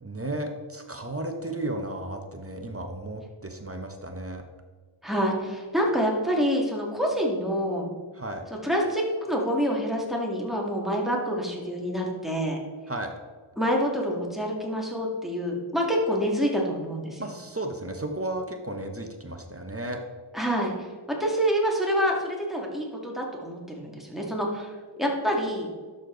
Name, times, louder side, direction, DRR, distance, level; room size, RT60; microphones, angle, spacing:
voice 1, 0.0-4.4 8.1-8.5 12.9-13.1 17.2-20.0, right 1 dB, 30° right, 4 dB, 1.1 m, -34 dB
voice 2, 5.0-7.9 8.6-12.6 13.6-17.2 20.3-24.7 25.0-25.7, equal, ahead, -1 dB, 2.3 m, -27 dB
11.5 x 6.9 x 3.9 m, 1.5 s
wide cardioid pair, 55°, 49 cm